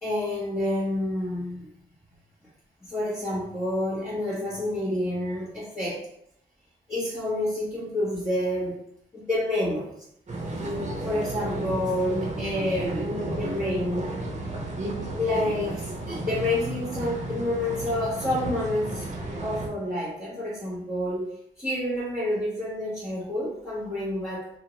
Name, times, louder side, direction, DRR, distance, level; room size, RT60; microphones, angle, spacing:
voice 1, 0.0-1.7 2.8-6.1 6.9-8.8 9.1-9.9 11.0-14.2 15.1-19.1 19.4-24.5, left 1 dB, 15° left, -9 dB, 1.3 m, -28 dB
sound 1, 10.3-19.7, right 2 dB, 35° right, 0.9 m, -33 dB
2.7 x 2.5 x 3.0 m, 0.72 s
cardioid pair, 70°, 20 cm